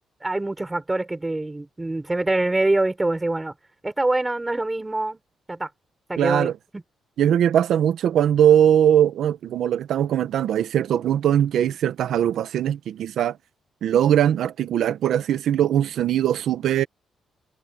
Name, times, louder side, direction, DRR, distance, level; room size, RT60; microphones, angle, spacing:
voice 1, 0.2-3.5 3.8-5.2 5.5-5.7 6.1-6.8, right 2 dB, 10° right, 4.4 m, -25 dB
voice 2, 6.2-6.5 7.2-13.4 13.8-16.9, right 10 dB, 70° right, 1.2 m, -20 dB
cardioid pair, 165°, 0 cm